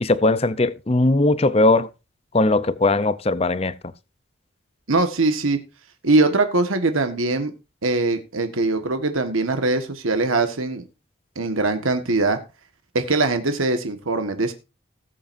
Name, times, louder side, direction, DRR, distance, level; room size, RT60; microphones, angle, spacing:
voice 1, 0.0-1.9 2.3-3.7, left 2 dB, 30° left, 0.6 m, -19 dB
voice 2, 4.9-5.6 6.0-7.5 7.8-10.8 11.3-12.4 12.9-14.5, right 2 dB, 90° right, 1.5 m, -21 dB
19.0 x 7.7 x 2.6 m
head